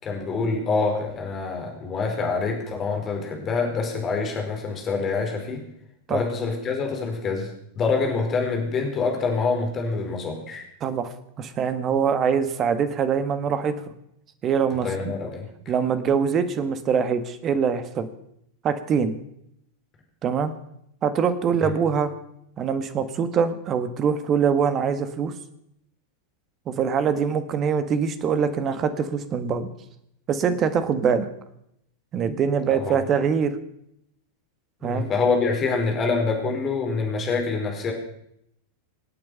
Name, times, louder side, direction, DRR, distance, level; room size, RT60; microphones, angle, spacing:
voice 1, 0.0-5.6 6.1-10.6 14.7-15.5 21.6-21.7 32.7-33.0 34.8-37.9, left 4 dB, 25° left, 2 dB, 4.7 m, -26 dB
voice 2, 10.8-13.7 14.4-15.1 15.7-18.1 18.6-19.1 20.2-20.5 21.0-22.1 22.6-25.3 26.7-29.7 30.3-31.3 32.1-33.5 34.8-35.1, right 6 dB, 30° right, 11 dB, 1.6 m, -23 dB
26.0 x 8.7 x 5.7 m, 0.75 s
figure-of-eight pair, 90°, 0 cm